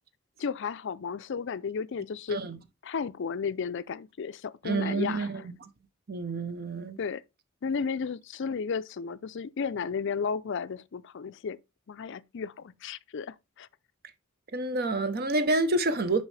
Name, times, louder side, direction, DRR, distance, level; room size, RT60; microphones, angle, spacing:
voice 1, 0.4-2.4 2.8-5.5 7.0-7.2 7.6-11.6 11.9-13.7, left 5 dB, 55° left, 0.4 m, -33 dB
voice 2, 4.6-5.3 6.1-7.0 14.5-16.2, right 2 dB, 45° right, 0.8 m, -28 dB
6.2 x 5.6 x 3.2 m
head